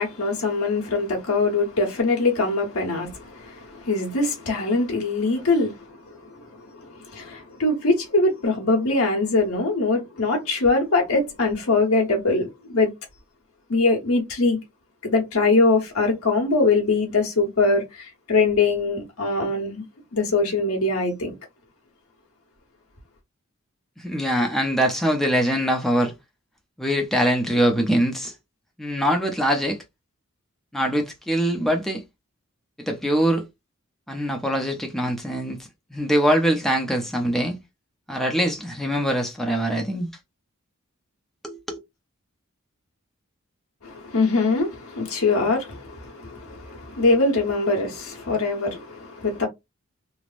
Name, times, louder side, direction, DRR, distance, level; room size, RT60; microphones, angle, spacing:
voice 1, 0.0-5.9 6.5-12.9 13.7-14.6 15.0-19.8 20.1-21.3 43.8-49.5, left 3 dB, 85° left, 1.0 m, -22 dB
voice 2, 24.0-26.1 26.8-28.3 28.8-29.8 30.7-32.0 32.9-33.4 34.1-35.6 35.9-37.6 38.1-40.1 41.4-41.8, equal, ahead, 0.5 m, -23 dB
3.2 x 2.0 x 2.4 m
head